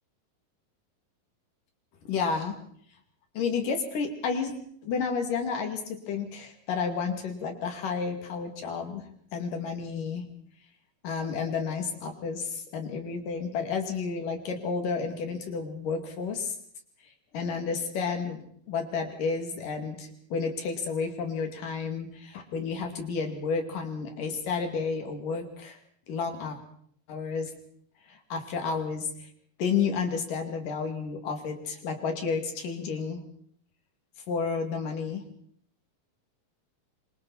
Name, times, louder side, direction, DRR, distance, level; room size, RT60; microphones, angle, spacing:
voice 1, 2.1-2.6 3.3-4.5 4.8-10.3 11.0-16.6 17.3-25.8 26.1-26.6 27.1-27.5 28.1-29.3 29.6-33.2 34.3-35.3, left 5 dB, 75° left, 5 dB, 4.2 m, -31 dB
26.0 x 25.0 x 4.3 m, 0.63 s
omnidirectional pair, 3.8 m